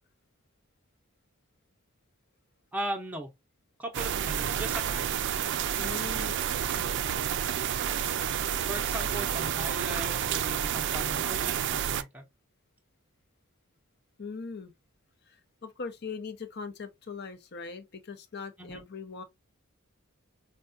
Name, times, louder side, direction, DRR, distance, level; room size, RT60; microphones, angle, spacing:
voice 1, 2.7-3.3 3.8-5.1 8.7-12.3 18.6-18.8, right 1 dB, 5° right, 0.7 m, -38 dB
sound 1, 3.9-12.0, right 9 dB, 55° right, 0.3 m, -30 dB
voice 2, 5.8-7.4 14.2-14.7 15.3-15.4 15.6-19.2, left 4 dB, 50° left, 0.7 m, -41 dB
4.5 x 2.2 x 2.5 m
head